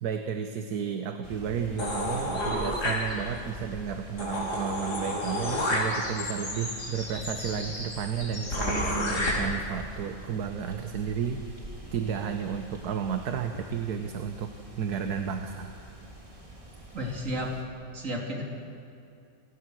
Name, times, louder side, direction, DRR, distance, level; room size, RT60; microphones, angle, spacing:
voice 1, 0.0-11.6 11.9-14.5 14.8-15.7, right 7 dB, 70° right, 6 dB, 1.5 m, -32 dB
sound 1, 1.2-17.6, right 1 dB, 20° right, 2.9 m, -45 dB
sound 2, 1.8-3.5 3.9-4.0 4.2-9.3, left 1 dB, 75° left, 4.9 m, -31 dB
voice 2, 16.9-17.6 17.9-18.4, equal, 50° right, 0 dB, 3.3 m, -32 dB
28.0 x 18.5 x 6.3 m, 2.7 s
omnidirectional pair, 1.8 m